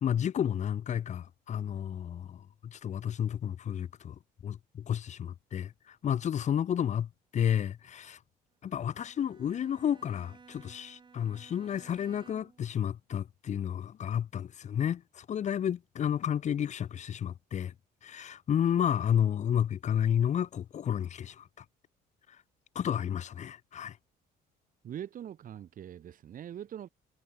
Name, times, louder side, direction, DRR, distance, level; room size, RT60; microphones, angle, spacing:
voice 1, 0.0-8.2 8.6-17.7 18.0-21.6 22.7-24.0, left 9 dB, 45° left, 1.0 m, -31 dB
Bowed string instrument, 8.7-12.7, right 5 dB, 30° right, 4.9 m, -56 dB
voice 2, 24.8-26.9, right 10 dB, 55° right, 4.6 m, -42 dB
cardioid pair, 110°, 17 cm